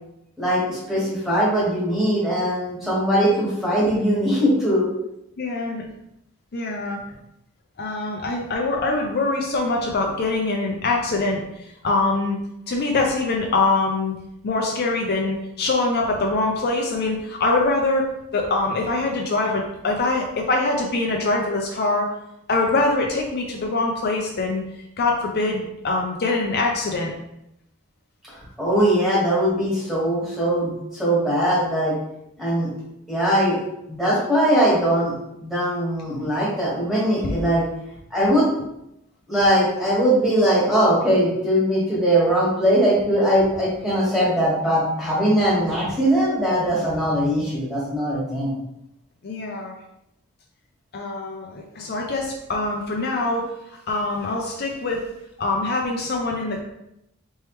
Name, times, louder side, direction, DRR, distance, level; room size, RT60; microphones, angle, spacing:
voice 1, 0.4-4.9 28.6-31.9 32.4-32.7 33.1-33.6 33.9-35.1 35.4-37.6 38.1-38.5 39.3-48.5, equal, ahead, -7 dB, 1.5 m, -20 dB
voice 2, 5.4-5.8 6.5-7.0 7.8-12.4 12.7-14.1 14.4-18.0 18.3-22.1 22.5-24.6 25.0-27.1 37.2-37.3 49.2-49.8 50.9-55.1 55.4-56.6, left 2 dB, 50° left, 0 dB, 0.5 m, -23 dB
4.4 x 3.4 x 3.0 m, 0.83 s
head